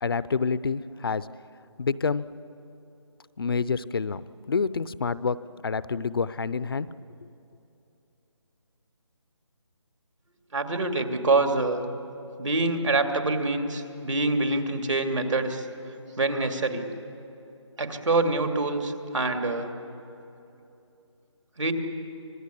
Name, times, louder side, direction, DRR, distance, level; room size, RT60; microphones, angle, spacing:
voice 1, 0.0-1.3 1.8-2.2 3.4-5.4 5.6-6.9, left 5 dB, 50° left, 17 dB, 0.6 m, -27 dB
voice 2, 10.5-11.9 12.4-15.7 16.2-16.8 17.8-19.7 21.6-21.7, right 2 dB, 75° right, 5 dB, 2.7 m, -25 dB
26.0 x 20.0 x 8.4 m, 2.9 s
figure-of-eight pair, 165°, 16 cm